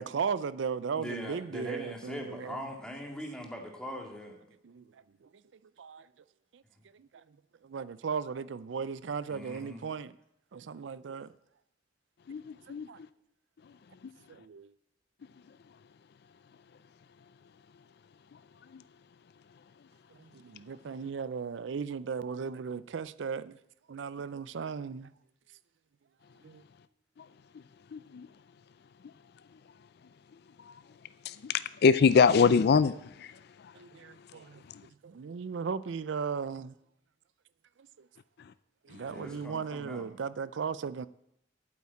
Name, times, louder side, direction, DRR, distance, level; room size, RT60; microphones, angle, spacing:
voice 1, 0.0-2.6 4.6-4.8 5.2-5.3 5.8-6.1 6.5-6.6 6.9-7.2 7.6-10.1 10.5-11.3 12.7-13.0 14.3-14.7 20.1-23.6 23.9-25.1 26.4-26.6 33.7-34.6 35.0-36.7 38.0-38.1 38.8-41.1, right 6 dB, 85° right, 0.4 m, -36 dB
voice 2, 1.0-4.4 9.3-9.8 39.1-40.0, equal, 5° left, 2.1 m, -41 dB
voice 3, 12.3-12.9 27.9-28.3 31.3-33.3, left 5 dB, 60° left, 0.4 m, -24 dB
8.6 x 8.4 x 8.4 m
head